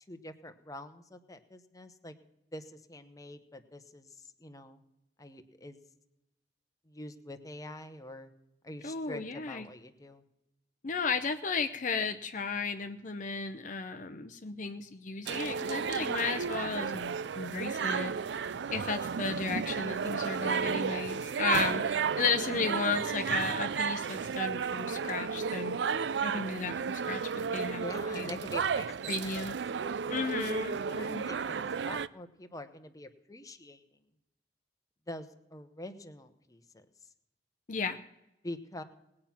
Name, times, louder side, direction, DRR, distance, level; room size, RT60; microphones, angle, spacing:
voice 1, 0.1-2.2 2.5-4.8 5.2-5.8 6.9-8.3 8.6-10.2 27.7-29.4 30.1-30.3 30.7-33.8 35.1-36.8 38.4-38.8, left 1 dB, 20° left, 8 dB, 1.0 m, -45 dB
voice 2, 8.8-9.7 10.8-25.8 26.2-27.2 27.5-27.8 28.1-28.4 29.1-29.6 30.1-31.3 37.7-38.0, left 5 dB, 45° left, 8 dB, 0.7 m, -34 dB
sound 1, 15.3-32.1, right 6 dB, 75° right, 0.4 m, -33 dB
19.0 x 8.7 x 5.9 m, 0.91 s
head